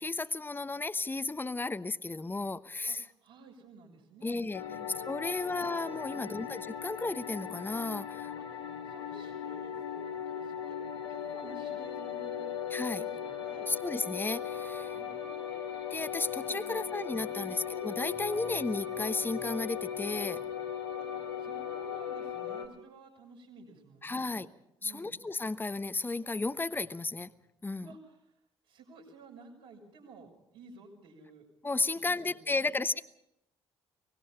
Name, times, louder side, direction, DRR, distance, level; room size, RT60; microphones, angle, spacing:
voice 1, 0.0-3.1 4.2-4.6 5.1-8.3 12.7-13.0 13.7-15.0 15.9-20.5 24.0-24.5 24.8-27.3 27.6-27.9 31.6-33.0, left 3 dB, 15° left, 13 dB, 0.9 m, -34 dB
voice 2, 2.9-5.0 5.4-5.8 6.1-6.5 8.4-10.8 11.1-12.6 13.0-13.7 14.9-15.6 16.3-16.8 17.2-17.6 18.3-18.4 21.0-24.5 24.8-25.1 27.8-28.3 28.6-31.5 31.9-32.7, right 3 dB, 75° right, -2 dB, 6.0 m, -53 dB
sound 1, 4.5-22.7, left 8 dB, 80° left, 2.2 m, -38 dB
24.0 x 19.0 x 5.7 m, 0.81 s
figure-of-eight pair, 45°, 13 cm